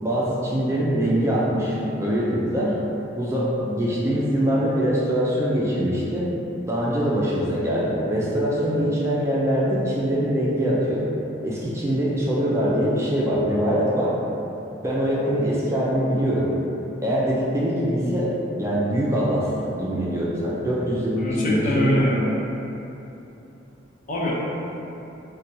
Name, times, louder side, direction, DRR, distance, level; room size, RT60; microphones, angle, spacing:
voice 1, 0.0-2.8 3.2-6.3 6.7-11.1 11.4-14.2 14.8-16.5 17.0-18.3 18.6-21.9, equal, 15° right, -6 dB, 0.3 m, -23 dB
voice 2, 21.2-22.3 24.1-24.3, equal, 45° left, -5 dB, 0.6 m, -23 dB
4.2 x 2.2 x 2.6 m, 2.9 s
head